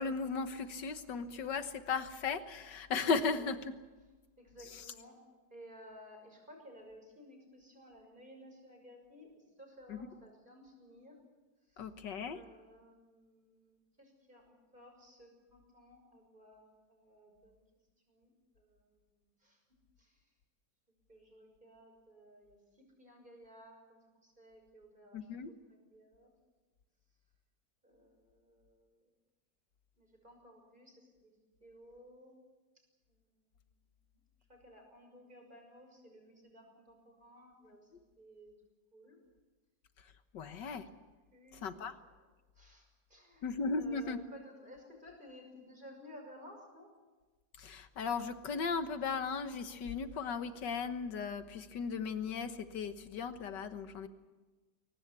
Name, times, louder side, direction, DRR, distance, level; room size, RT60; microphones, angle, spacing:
voice 1, 0.0-3.7 9.9-10.0 11.8-12.4 25.1-25.5 40.3-40.9 41.6-41.9 43.4-44.2 47.6-54.1, left 5 dB, 85° left, 9 dB, 1.9 m, -36 dB
voice 2, 3.2-3.6 4.4-5.2 5.5-11.2 11.7-11.9 12.3-17.6 18.1-19.6 20.0-20.2 21.1-26.3 27.8-29.1 30.0-32.4 32.7-33.7 34.1-34.2 34.5-37.9 38.2-38.6 38.9-39.2 41.3-41.6 42.0-42.3 42.5-43.5 43.8-46.9, equal, 25° right, 2 dB, 6.2 m, -57 dB
22.5 x 19.0 x 8.3 m, 1.2 s
omnidirectional pair, 1.8 m